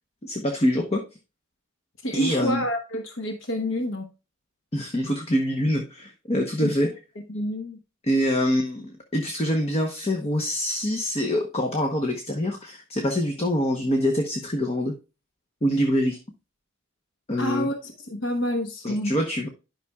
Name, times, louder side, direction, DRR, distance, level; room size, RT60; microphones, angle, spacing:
voice 1, 0.2-1.0 2.1-2.6 4.7-6.9 8.0-14.9 15.6-16.2 17.3-17.7 18.8-19.5, equal, 30° left, 0.8 m, -25 dB
voice 2, 2.0-4.1 6.6-6.7 7.3-7.8 17.4-19.1, equal, 60° left, 1.0 m, -28 dB
11.0 x 5.9 x 2.3 m
head